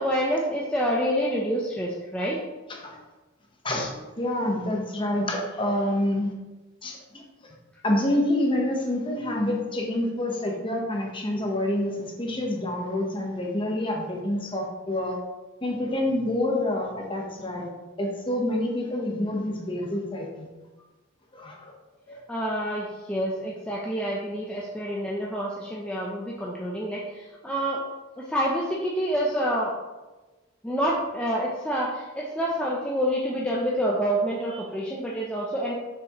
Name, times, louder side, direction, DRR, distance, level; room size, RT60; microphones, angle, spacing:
voice 1, 0.0-2.4 22.3-27.8 28.2-29.7 30.6-35.7, equal, 5° left, -4 dB, 0.7 m, -27 dB
voice 2, 3.6-6.3 6.8-7.2 7.8-15.2 15.6-17.7 18.0-20.5 21.3-21.7 22.1-22.2, left 1 dB, 25° left, 0 dB, 1.1 m, -27 dB
7.0 x 6.1 x 3.1 m, 1.2 s
head